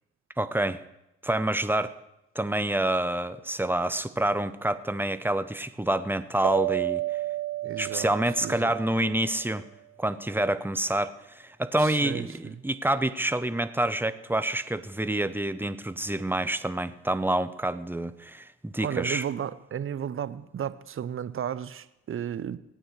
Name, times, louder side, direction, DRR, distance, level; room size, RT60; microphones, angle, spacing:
voice 1, 0.4-0.8 1.2-1.9 2.3-7.0 7.8-9.6 10.0-19.2, right 1 dB, 5° right, 0.7 m, -27 dB
sound 1, 6.4-9.4, right 18 dB, 85° right, 0.6 m, -32 dB
voice 2, 7.6-8.1 8.4-8.7 11.8-12.6 18.8-22.6, right 9 dB, 45° right, 0.7 m, -34 dB
20.0 x 9.0 x 3.2 m
hypercardioid pair, 50°, 30 cm